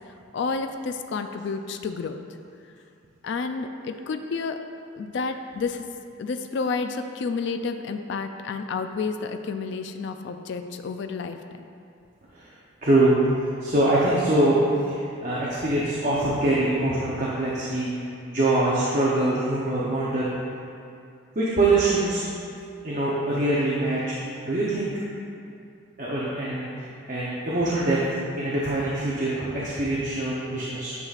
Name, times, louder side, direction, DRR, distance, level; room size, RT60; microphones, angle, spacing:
voice 1, 0.1-2.2 3.2-4.6 4.9-5.9 6.2-11.4, left 4 dB, 55° left, 7 dB, 0.3 m, -30 dB
voice 2, 12.8-14.6 14.9-17.9 18.3-20.3 21.3-22.2 22.8-24.0 24.4-24.9 26.0-28.0 28.4-31.0, right 2 dB, 40° right, -7 dB, 0.7 m, -24 dB
9.7 x 5.6 x 2.4 m, 2.5 s
head